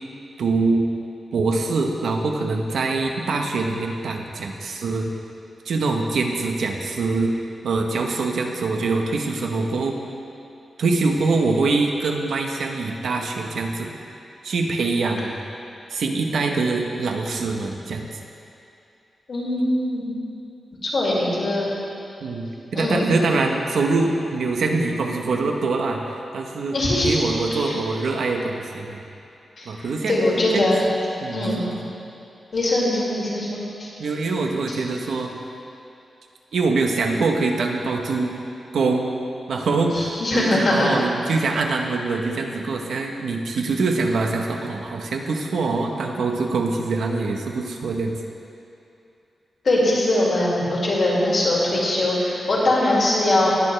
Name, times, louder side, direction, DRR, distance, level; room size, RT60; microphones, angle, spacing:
voice 1, 0.4-0.8 1.3-5.1 5.6-7.3 7.6-10.0 10.8-13.9 14.4-15.4 15.9-18.1 22.2-26.0 26.3-29.0 29.7-30.2 30.5-30.7 31.2-31.8 34.0-35.4 36.5-38.3 38.7-39.1 39.5-48.1, right 3 dB, 70° right, 2 dB, 1.0 m, -24 dB
voice 2, 19.3-20.1 20.8-21.7 22.7-23.1 26.7-27.2 27.5-27.7 29.6-30.9 31.3-31.6 32.5-33.9 39.9-40.9 49.6-53.5, left 1 dB, 45° left, -5 dB, 2.2 m, -21 dB
19.5 x 6.7 x 3.3 m, 2.7 s
wide cardioid pair, 175°, 0 cm